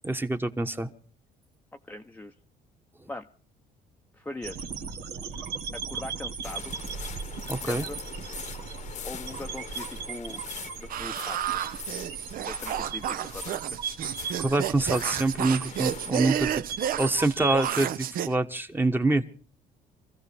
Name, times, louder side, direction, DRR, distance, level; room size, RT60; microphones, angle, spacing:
voice 1, 0.0-0.9 7.5-7.9 14.4-16.5 17.0-19.2, right 2 dB, 10° right, 1.2 m, -26 dB
voice 2, 1.8-2.3 3.1-3.3 4.1-4.7 5.7-6.7 7.5-8.0 9.0-10.4 10.8-11.6 12.4-13.8, left 2 dB, 10° left, 0.7 m, -41 dB
sound 1, 4.4-17.7, right 6 dB, 80° right, 1.7 m, -37 dB
sound 2, 6.4-16.1, left 8 dB, 45° left, 1.0 m, -43 dB
sound 3, 10.9-18.3, right 10 dB, 60° right, 0.7 m, -31 dB
26.5 x 15.0 x 3.4 m
cardioid pair, 110°, 17 cm